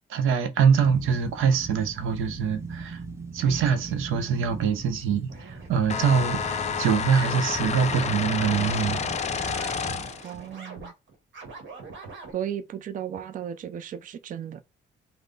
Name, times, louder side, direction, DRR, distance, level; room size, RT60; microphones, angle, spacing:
voice 1, 0.1-3.0 3.3-6.4 6.8-9.7, right 6 dB, 85° right, 0.7 m, -24 dB
sound 1, 0.7-10.1, right 3 dB, 15° right, 0.7 m, -39 dB
sound 2, 5.3-9.0 9.5-12.3, right 3 dB, 70° right, 1.2 m, -44 dB
sound 3, 5.9-10.3, left 6 dB, 35° left, 0.4 m, -29 dB
voice 2, 10.2-10.9 12.3-14.6, right 9 dB, 40° right, 0.4 m, -35 dB
3.2 x 2.1 x 3.8 m
cardioid pair, 90°, 20 cm